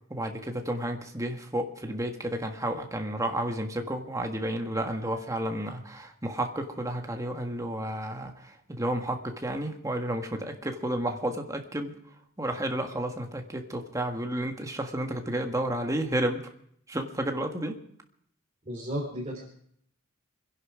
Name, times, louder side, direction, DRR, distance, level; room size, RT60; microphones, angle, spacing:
voice 1, 0.1-11.9 12.4-16.4 16.9-17.8, right 1 dB, 15° right, 4 dB, 1.6 m, -31 dB
voice 2, 18.7-19.4, equal, 30° right, -5 dB, 3.9 m, -33 dB
25.0 x 11.0 x 5.0 m, 0.68 s
head